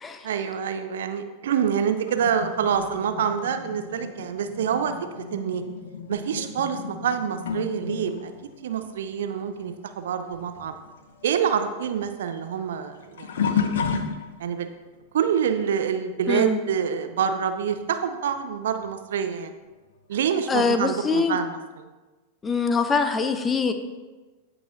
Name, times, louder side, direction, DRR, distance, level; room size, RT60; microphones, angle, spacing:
voice 1, 0.2-4.9 5.3-5.6 6.1-8.3 8.6-10.7 11.2-13.9 14.4-14.7 15.1-19.5 20.1-21.9, right 8 dB, 60° right, 8 dB, 0.6 m, -26 dB
sound 1, 2.1-10.1 10.3-14.7 15.3-15.6 17.8-17.9 18.8-18.9, left 6 dB, 60° left, 0.6 m, -33 dB
voice 2, 16.3-16.6 20.5-21.4 22.4-23.7, left 4 dB, 20° left, 8 dB, 0.6 m, -23 dB
14.5 x 4.8 x 2.6 m, 1.2 s
figure-of-eight pair, 90°, 0 cm